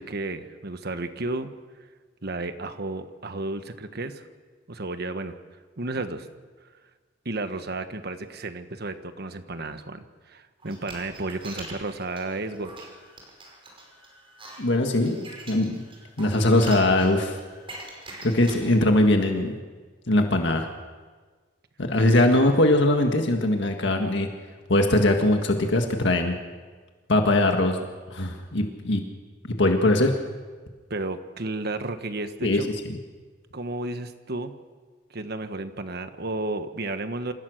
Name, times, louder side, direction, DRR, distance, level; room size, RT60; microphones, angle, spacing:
voice 1, 0.0-1.5 2.2-4.2 4.7-5.3 5.8-6.3 7.2-12.9 22.0-22.2 30.9-32.7 33.5-34.5 35.1-37.3, right 2 dB, 55° right, 9 dB, 1.3 m, -32 dB
sound 1, 10.6-18.8, right 2 dB, 30° right, 5.4 m, -44 dB
voice 2, 14.6-15.2 15.5-15.8 16.2-17.4 18.2-19.6 20.1-20.7 21.8-24.3 24.7-26.4 27.1-27.8 28.1-29.0 29.6-30.1 32.4-32.6, left 1 dB, 65° left, 4 dB, 1.8 m, -21 dB
27.0 x 16.0 x 6.5 m, 1.4 s
head